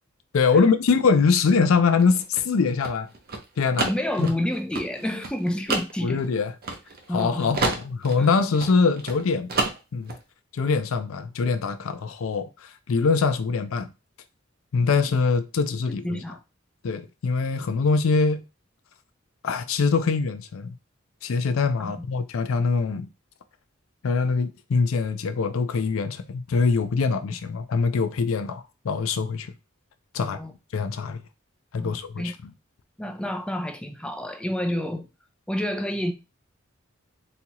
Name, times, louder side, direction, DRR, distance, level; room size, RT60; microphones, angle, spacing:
voice 1, 0.3-3.1 3.6-3.9 4.2-4.3 6.0-6.5 7.1-9.5 9.9-10.1 10.5-12.5 12.9-13.9 14.7-16.2 16.8-18.4 19.4-20.7 21.2-23.1 24.0-29.5 30.1-30.4 30.7-31.2 31.7-32.5, left 4 dB, 80° left, 0.4 m, -23 dB
sound 1, 1.9-7.2 7.5-9.2 9.5-10.2, right 3 dB, 50° right, 0.7 m, -29 dB
voice 2, 3.9-6.2 7.1-7.7 8.2-8.3 15.9-16.4 21.8-22.0 30.2-30.5 31.8-32.3 33.0-35.1 35.5-36.1, left 1 dB, 5° left, 0.4 m, -29 dB
4.2 x 2.3 x 2.9 m
head